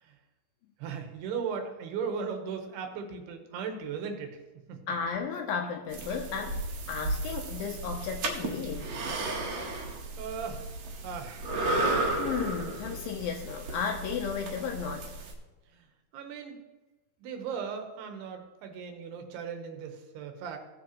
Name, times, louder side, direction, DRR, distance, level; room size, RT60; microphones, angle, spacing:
voice 1, 0.8-4.4 4.7-4.8 10.2-10.7 11.0-11.5 15.7-15.9 16.1-16.6 17.2-20.6, right 6 dB, 80° right, 5 dB, 3.1 m, -37 dB
voice 2, 4.9-6.6 6.9-9.0 9.7-9.9 11.6-11.8 12.2-15.1, left 6 dB, 75° left, 3 dB, 2.2 m, -34 dB
sound 1, 5.9-15.3, right 2 dB, 60° right, 1.9 m, -34 dB
16.5 x 7.5 x 3.0 m, 1.1 s
omnidirectional pair, 4.7 m